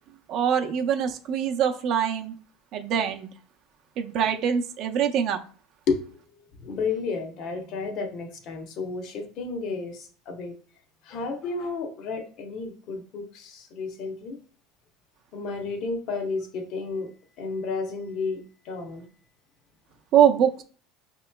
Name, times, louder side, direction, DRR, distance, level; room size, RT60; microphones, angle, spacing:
voice 1, 0.3-2.4 2.7-3.3 4.0-5.4 20.1-20.6, right 8 dB, 60° right, 5 dB, 0.5 m, -23 dB
voice 2, 6.6-10.6 11.0-14.4 15.3-17.1 17.4-19.0, left 4 dB, 60° left, 4 dB, 0.8 m, -32 dB
5.5 x 2.9 x 2.2 m, 0.42 s
supercardioid pair, 105°, 0 cm